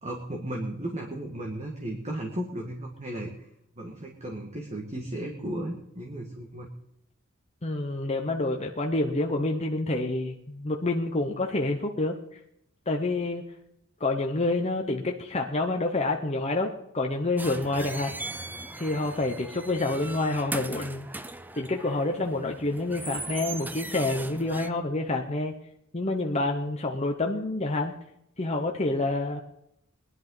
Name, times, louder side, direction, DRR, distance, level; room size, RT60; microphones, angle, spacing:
voice 1, 0.0-3.3 3.8-6.7, right 1 dB, 35° right, 0 dB, 1.8 m, -35 dB
voice 2, 7.6-12.2 12.9-13.4 14.0-18.1 18.8-21.1 21.6-25.5 25.9-27.9 28.4-29.4, left 2 dB, 30° left, 1 dB, 1.0 m, -28 dB
sound 1, 17.4-24.7, right 2 dB, 10° right, 0.6 m, -39 dB
20.5 x 11.0 x 3.9 m, 0.78 s
head